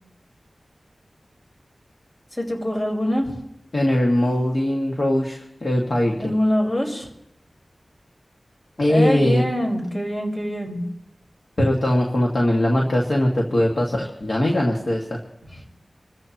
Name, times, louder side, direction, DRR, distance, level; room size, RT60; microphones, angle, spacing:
voice 1, 2.4-3.4 6.2-7.1 8.9-10.9, left 1 dB, 45° left, -1 dB, 4.9 m, -24 dB
voice 2, 3.7-6.2 8.8-9.4 11.6-15.2, left 1 dB, 60° left, -1 dB, 1.9 m, -20 dB
27.0 x 14.5 x 3.0 m, 0.81 s
wide cardioid pair, 75°, 0 cm